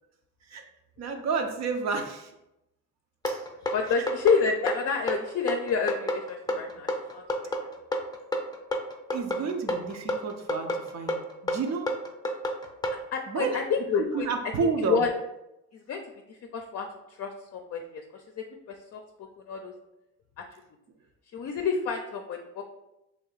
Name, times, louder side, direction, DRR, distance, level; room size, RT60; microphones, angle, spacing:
voice 1, 1.0-2.3 3.3-3.5 3.9-4.0 9.1-11.9 13.3-13.6 14.1-15.0, right 4 dB, 60° right, 5 dB, 0.7 m, -30 dB
sound 1, 3.2-13.0, left 1 dB, 15° left, 0.6 m, -30 dB
voice 2, 3.7-7.2 7.6-7.7 13.1-14.3 14.8-15.1 15.9-16.0 16.5-16.9 17.2-18.0 18.4-18.5 18.9-19.0 19.5-19.7 21.3-22.4, left 5 dB, 55° left, 3 dB, 0.5 m, -28 dB
3.3 x 2.7 x 3.9 m, 0.90 s
cardioid pair, 90°, 30 cm